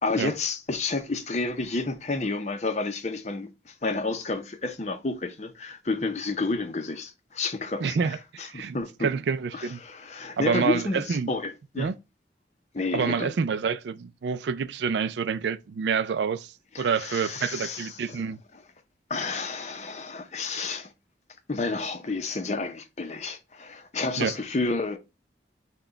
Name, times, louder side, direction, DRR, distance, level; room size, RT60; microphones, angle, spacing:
voice 1, 0.0-9.1 9.5-11.9 12.7-13.3 16.7-18.2 19.1-20.9 21.5-25.0, left 3 dB, 40° left, 0.6 m, -30 dB
voice 2, 7.8-9.8 10.4-11.3 11.8-11.9 12.9-18.4 24.2-24.3, right 6 dB, 75° right, 0.4 m, -28 dB
5.9 x 2.2 x 3.8 m
head